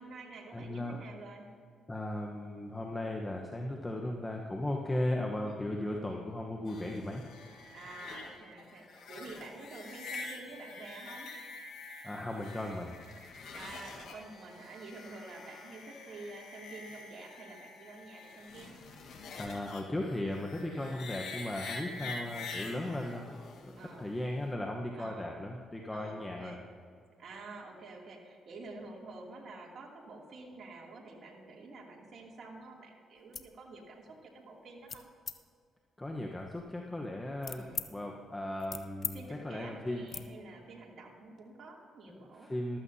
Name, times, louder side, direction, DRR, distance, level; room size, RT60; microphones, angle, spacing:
voice 1, 0.0-1.5 3.9-4.2 5.4-5.9 6.7-7.2 7.7-11.3 13.5-18.7 20.7-21.0 21.9-22.4 23.7-24.2 24.9-25.4 25.9-26.6 27.2-35.1 37.5-37.9 39.0-42.5, right 3 dB, 60° right, -1 dB, 2.6 m, -49 dB
voice 2, 0.5-1.0 1.9-7.2 12.0-12.9 19.4-26.6 36.0-40.1 42.1-42.8, left 1 dB, 15° left, 0 dB, 1.0 m, -37 dB
sound 1, 6.7-24.5, left 3 dB, 75° left, 1.5 m, -46 dB
sound 2, 33.2-33.5 34.0-34.3 34.9-35.4 36.0-37.9 38.3-39.2 39.4-39.6 40.1-40.3, left 6 dB, 45° left, 0.7 m, -42 dB
14.5 x 13.0 x 2.8 m, 2.3 s
cardioid pair, 90°, 0 cm